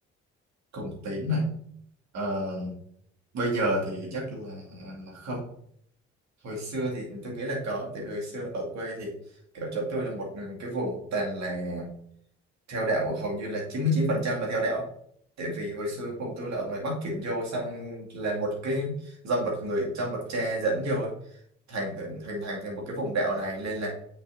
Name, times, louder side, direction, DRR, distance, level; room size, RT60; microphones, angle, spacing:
voice 1, 0.7-1.5 2.1-2.7 3.3-5.4 6.4-9.1 9.5-11.9 12.7-14.8 15.4-21.1 21.7-23.9, right 1 dB, 50° right, -2 dB, 2.4 m, -30 dB
7.9 x 6.4 x 2.7 m, 0.66 s
figure-of-eight pair, 45°, 34 cm